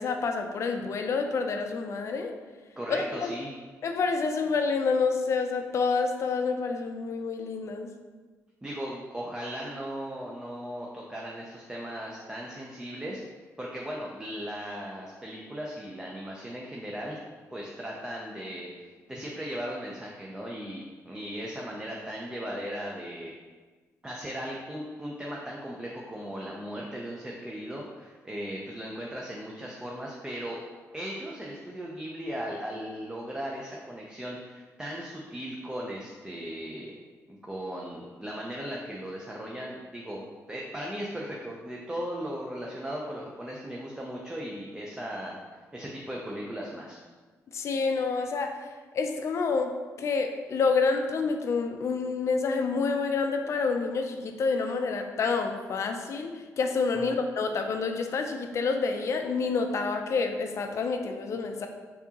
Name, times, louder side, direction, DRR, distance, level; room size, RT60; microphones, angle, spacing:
voice 1, 0.0-2.3 2.9-3.3 3.8-7.9 47.5-48.6 48.9-49.7 50.0-56.3 56.6-61.7, left 4 dB, 55° left, 5 dB, 0.4 m, -28 dB
voice 2, 2.8-3.5 8.6-13.2 13.6-17.2 17.5-23.3 24.0-30.6 30.9-36.9 37.5-45.4 45.7-47.0 56.9-57.2, equal, 10° right, -3 dB, 0.5 m, -37 dB
4.4 x 2.8 x 2.8 m, 1.4 s
cardioid pair, 100°, 6 cm